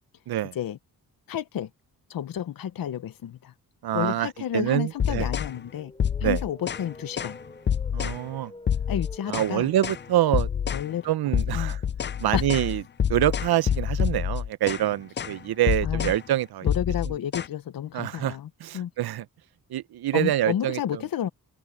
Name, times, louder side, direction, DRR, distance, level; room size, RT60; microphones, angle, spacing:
voice 1, 1.3-1.7 2.1-3.5 3.9-5.9 6.2-7.4 8.9-9.7 10.7-11.1 11.5-11.8 12.3-12.4 15.8-16.1 16.6-18.5 18.7-18.9 20.1-21.3, left 10 dB, 65° left, 0.9 m, -31 dB
voice 2, 3.8-5.3 6.2-6.4 7.9-8.5 9.3-10.5 11.0-11.8 12.2-12.8 13.1-16.7 17.1-17.2 17.9-19.3 19.7-21.0, right 13 dB, 80° right, 0.7 m, -26 dB
sound 1, 4.1-14.1, left 2 dB, 15° left, 5.2 m, -50 dB
sound 2, 5.0-5.5 6.0-6.9 7.2-7.4 7.7-8.2 8.7-9.5 9.8-10.0 10.3-10.9 11.3-14.9 15.2-15.4 15.7-16.2 16.7-17.5, left 8 dB, 30° left, 0.4 m, -27 dB
open air
cardioid pair, 100°, 37 cm